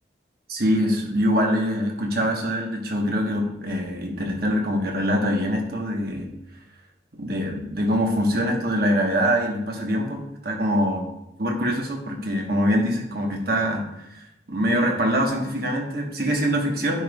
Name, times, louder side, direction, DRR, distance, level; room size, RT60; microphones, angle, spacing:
voice 1, 0.5-6.3 7.2-11.0 11.4-17.0, equal, 55° right, 1 dB, 1.3 m, -24 dB
9.9 x 5.2 x 2.4 m, 0.88 s
head